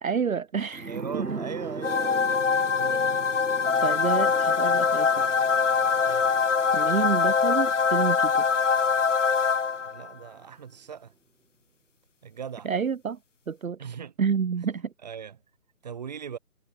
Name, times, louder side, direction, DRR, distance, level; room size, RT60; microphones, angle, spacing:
voice 1, 0.0-1.4 3.8-5.3 6.7-8.4 12.6-13.2 13.5-13.8 14.2-14.9, right 6 dB, 60° right, 0.9 m, -29 dB
sound 1, 0.7-10.0 10.3-10.4, right 3 dB, 80° right, 6.9 m, -41 dB
voice 2, 0.9-3.2 6.0-6.3 9.8-11.1 12.2-12.7 13.8-14.1 15.0-15.4 15.8-16.4, right 7 dB, 25° right, 3.4 m, -39 dB
sound 2, 1.8-10.1, left 5 dB, 50° left, 0.8 m, -23 dB
figure-of-eight pair, 170°, 46 cm